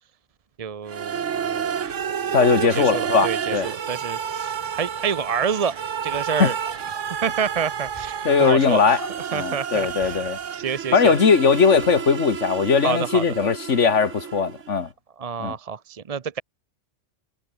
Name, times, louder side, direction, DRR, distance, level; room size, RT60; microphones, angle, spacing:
voice 1, 0.6-1.8 2.6-6.6 7.2-10.2 10.5-11.2 12.8-13.2 15.2-16.4, right 7 dB, 40° right, 0.6 m, -28 dB
sound 1, 0.9-14.7, right 8 dB, 75° right, 1.5 m, -30 dB
sound 2, 1.3-12.0, left 1 dB, 30° left, 7.5 m, -49 dB
voice 2, 2.3-3.7 6.4-6.5 8.3-9.0 9.3-10.4 10.9-14.9 15.4-15.5, left 5 dB, 70° left, 2.0 m, -19 dB
omnidirectional pair, 1.3 m